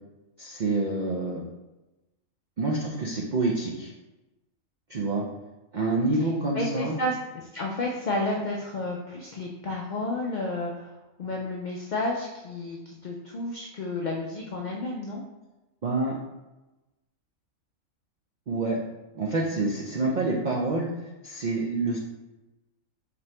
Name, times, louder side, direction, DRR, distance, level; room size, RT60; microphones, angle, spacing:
voice 1, 0.4-1.4 2.6-3.9 4.9-5.2 5.7-7.0 15.8-16.2 18.5-18.8 19.1-20.9 21.2-22.0, right 2 dB, 75° right, -2 dB, 0.4 m, -27 dB
voice 2, 6.2-10.9 11.2-15.2, left 2 dB, 80° left, -1 dB, 0.4 m, -31 dB
4.2 x 2.8 x 3.2 m, 1.1 s
omnidirectional pair, 1.4 m